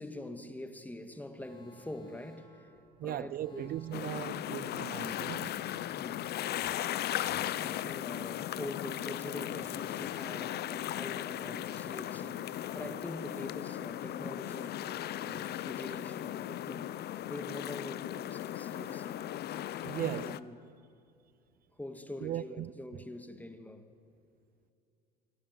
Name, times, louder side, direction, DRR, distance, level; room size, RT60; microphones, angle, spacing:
voice 1, 0.0-2.7 3.0-3.7 6.0-6.3 7.4-16.9 17.3-19.3 19.9-20.6 21.7-23.9, left 1 dB, 10° left, 2.4 m, -45 dB
Alarm, 1.4-13.3 18.7-20.3, left 1 dB, 25° left, 8.0 m, -59 dB
voice 2, 3.0-5.6 6.5-6.6 19.8-20.4 22.2-22.7, right 12 dB, 45° right, 0.6 m, -38 dB
sound 1, 3.2-13.7, right 6 dB, 80° right, 2.2 m, -63 dB
sound 2, 3.9-20.4, left 12 dB, 55° left, 0.9 m, -37 dB
27.5 x 22.0 x 9.7 m
supercardioid pair, 80°, 20 cm